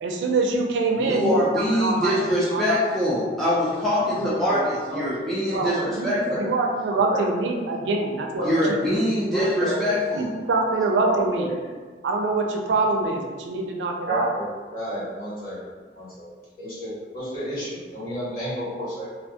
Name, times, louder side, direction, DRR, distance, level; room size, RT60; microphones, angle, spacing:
voice 1, 0.0-2.1 2.5-2.8 4.0-4.4 5.5-8.8 10.1-11.5 12.0-14.3, right 3 dB, 85° right, 2 dB, 0.4 m, -25 dB
voice 2, 1.0-6.2 8.4-10.3, equal, ahead, -9 dB, 0.3 m, -24 dB
voice 3, 4.4-5.9 6.3-6.4 6.9-7.2 7.5-7.6 8.4-8.7 9.3-10.0 11.1-11.5 14.1-14.4 14.7-16.3 16.6-19.1, equal, 50° left, -11 dB, 1.2 m, -32 dB
2.3 x 2.3 x 2.7 m, 1.5 s
head